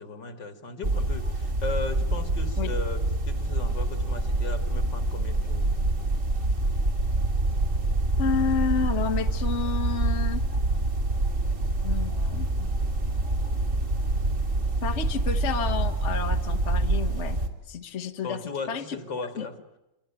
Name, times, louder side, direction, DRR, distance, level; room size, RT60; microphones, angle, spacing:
voice 1, 0.0-5.7 18.2-19.6, left 4 dB, 70° left, 7 dB, 3.1 m, -36 dB
sound 1, 0.8-17.5, right 2 dB, 40° right, 3.2 m, -26 dB
voice 2, 8.2-10.4 11.8-12.7 14.8-17.4 17.7-18.4 18.7-18.8 19.2-19.4, left 6 dB, 40° left, 5 dB, 1.6 m, -30 dB
28.5 x 23.0 x 8.9 m, 0.93 s
omnidirectional pair, 2.0 m